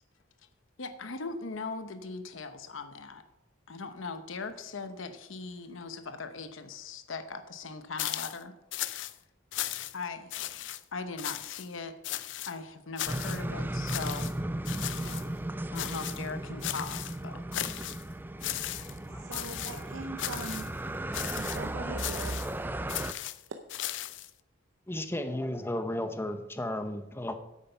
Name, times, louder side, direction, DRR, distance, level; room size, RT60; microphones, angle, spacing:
voice 1, 0.8-3.2 3.7-8.5 9.9-10.3 10.9-11.9 12.2-14.3 15.7-17.4, left 4 dB, 85° left, 9 dB, 0.9 m, -39 dB
sound 1, 8.0-8.4 8.7-9.1 9.5-10.0 10.3-10.8 11.2-11.7 12.0-12.5 13.0-13.4 13.9-14.3 14.6-15.3 15.7-16.3 16.6-17.2 17.5-18.0 18.4-19.0 19.3-19.8 20.2-20.7 21.1-21.6 22.0-22.5 22.9-24.3, left 13 dB, 65° left, 0.5 m, -36 dB
sound 2, 13.1-23.1, right 1 dB, 10° right, 0.3 m, -36 dB
voice 2, 14.9-15.3 19.2-20.7 21.4-22.4 23.5-23.6, right 3 dB, 85° right, 5 dB, 0.7 m, -41 dB
voice 3, 19.1-19.4 24.9-27.3, left 1 dB, 10° left, 8 dB, 0.7 m, -34 dB
9.3 x 8.4 x 5.6 m, 0.95 s
head